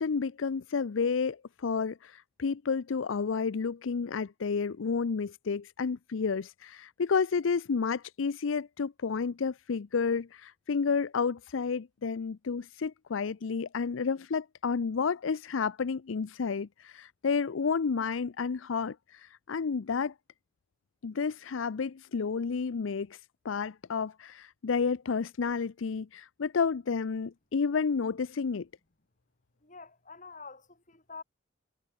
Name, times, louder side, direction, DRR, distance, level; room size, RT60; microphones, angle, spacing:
voice 1, 0.0-20.1 21.0-23.2 23.4-28.7, left 5 dB, 90° left, 0.5 m, -31 dB
voice 2, 29.6-31.2, left 4 dB, 40° left, 5.9 m, -47 dB
head